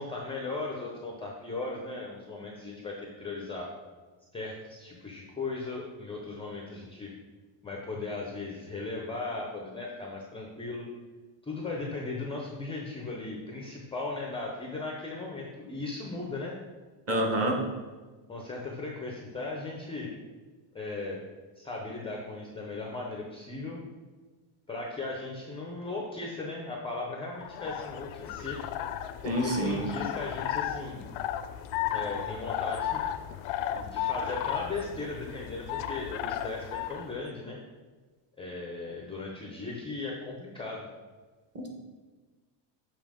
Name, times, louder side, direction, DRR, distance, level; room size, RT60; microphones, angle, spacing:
voice 1, 0.0-3.7 4.3-7.1 7.6-10.9 11.4-16.5 17.1-17.5 18.3-20.1 20.7-21.2 21.6-23.8 24.7-28.6 29.2-31.0 31.9-33.0 33.7-37.6 38.4-40.9, left 3 dB, 10° left, -1 dB, 0.5 m, -37 dB
voice 2, 17.1-17.6 29.2-29.8 41.5-41.7, right 1 dB, 30° right, 1 dB, 1.1 m, -27 dB
sound 1, 27.4-37.1, left 10 dB, 75° left, 0.6 m, -34 dB
7.2 x 2.9 x 4.9 m, 1.3 s
cardioid pair, 150°, 49 cm